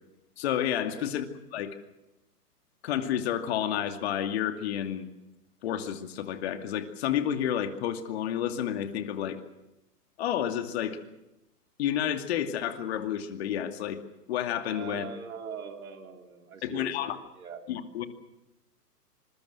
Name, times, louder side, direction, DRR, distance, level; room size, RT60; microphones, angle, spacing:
voice 1, 0.4-1.2 1.5-1.7 2.8-5.1 5.6-9.4 10.2-11.0 11.8-14.0 14.3-15.0 16.6-17.2 17.7-18.0, left 10 dB, 40° left, 7 dB, 2.5 m, -30 dB
voice 2, 14.7-17.6, right 6 dB, 60° right, 5 dB, 3.5 m, -42 dB
26.0 x 22.0 x 6.3 m, 0.92 s
hypercardioid pair, 135°, 48 cm